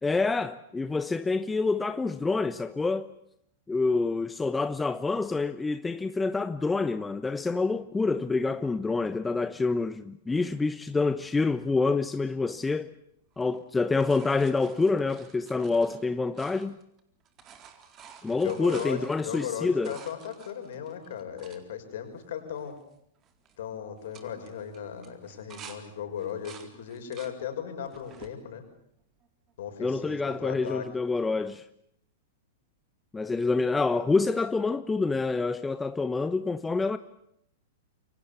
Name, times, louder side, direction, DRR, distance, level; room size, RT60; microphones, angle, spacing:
voice 1, 0.0-3.1 3.7-12.9 13.4-16.8 18.2-20.0 29.8-31.6 33.1-37.0, left 3 dB, 10° left, 1.0 m, -27 dB
sound 1, 13.3-17.0 17.2-21.6 22.2-22.3 22.5-22.9 23.2-23.6 24.0-25.8 26.2-27.4 27.8-28.4 29.0-29.7 31.3-31.4, right 7 dB, 30° right, 4.0 m, -51 dB
voice 2, 18.3-22.8 23.6-28.6 29.6-30.9, left 8 dB, 60° left, 6.2 m, -37 dB
28.0 x 25.0 x 7.2 m
figure-of-eight pair, 100°, 0 cm